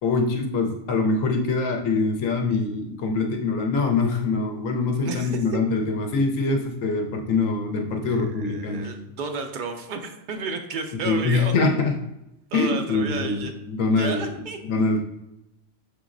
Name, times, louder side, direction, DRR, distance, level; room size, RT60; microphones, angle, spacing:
voice 1, 0.0-8.9 11.0-11.9 12.5-14.3 14.7-15.0, left 3 dB, 80° left, 2 dB, 1.0 m, -24 dB
voice 2, 5.0-5.6 8.0-11.5 12.5-13.5 13.9-14.6, right 4 dB, 70° right, 5 dB, 0.4 m, -32 dB
6.3 x 3.0 x 2.5 m, 0.92 s
omnidirectional pair, 1.4 m